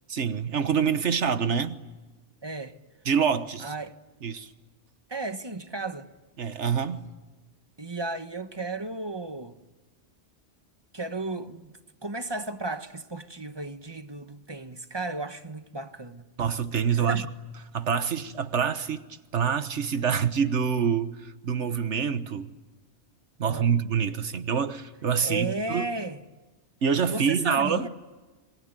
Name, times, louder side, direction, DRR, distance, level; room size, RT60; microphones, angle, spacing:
voice 1, 0.1-1.8 3.0-3.7 4.2-4.5 6.4-7.1 16.4-17.3 17.7-19.0 19.3-22.5 23.4-25.9 26.8-27.9, right 7 dB, 85° right, 1.6 m, -26 dB
voice 2, 2.4-2.8 3.6-4.0 5.1-6.1 7.8-9.6 10.9-16.3 16.9-17.3 23.5-23.7 25.2-26.2 27.1-27.9, right 2 dB, 25° right, 1.2 m, -34 dB
27.5 x 23.5 x 9.1 m
omnidirectional pair, 1.2 m